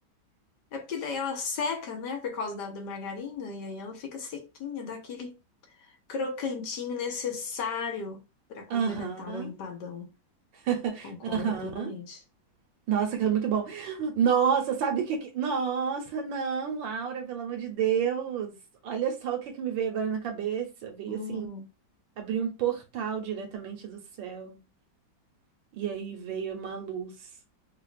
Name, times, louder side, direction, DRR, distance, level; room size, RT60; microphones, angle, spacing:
voice 1, 0.7-5.4 5.8-8.2 8.5-10.1 11.0-12.2 21.1-21.6, left 5 dB, 70° left, 1.4 m, -35 dB
voice 2, 8.7-9.5 10.6-11.9 12.9-18.5 18.8-21.5 22.2-24.6 25.7-27.1, right 7 dB, 80° right, 1.7 m, -29 dB
5.0 x 2.4 x 2.4 m
omnidirectional pair, 2.1 m